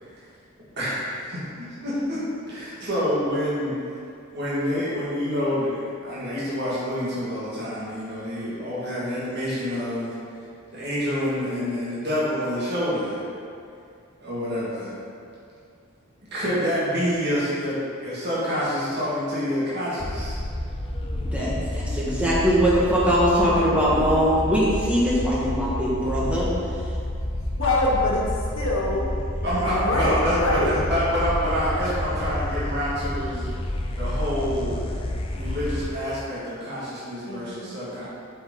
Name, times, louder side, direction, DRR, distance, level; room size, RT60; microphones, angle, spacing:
voice 1, 1.8-2.2 2.5-3.8 4.3-10.2 10.7-13.3 14.2-14.9 16.3-20.4 29.4-33.5 34.0-34.8 35.3-38.1, equal, 50° right, -9 dB, 2.0 m, -27 dB
sound 1, 20.0-35.9, left 1 dB, 25° left, 0.5 m, -29 dB
voice 2, 21.3-26.5, equal, 5° right, -8 dB, 1.6 m, -21 dB
voice 3, 27.6-28.2 28.5-29.2 29.5-30.7 37.3-37.7, left 2 dB, 75° left, -5 dB, 1.7 m, -25 dB
8.0 x 6.5 x 3.9 m, 2.4 s
head